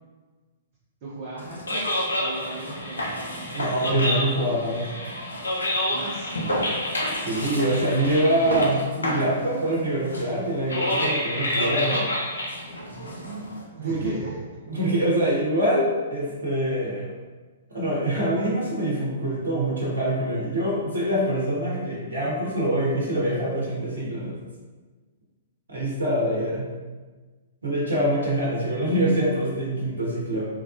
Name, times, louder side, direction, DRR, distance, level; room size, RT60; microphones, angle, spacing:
voice 1, 1.0-1.9 2.2-3.6 5.9-6.3 12.8-14.6 26.2-26.4, right 2 dB, 40° right, -7 dB, 0.6 m, -37 dB
sound 1, 1.4-13.6, left 1 dB, 75° left, 0.6 m, -29 dB
voice 2, 3.5-4.8 7.2-12.0 13.8-14.1 14.7-17.1 17.7-24.4 25.7-26.6 27.6-30.5, right 1 dB, 70° right, -5 dB, 0.8 m, -25 dB
3.2 x 2.3 x 2.4 m, 1.3 s
figure-of-eight pair, 110°, 0 cm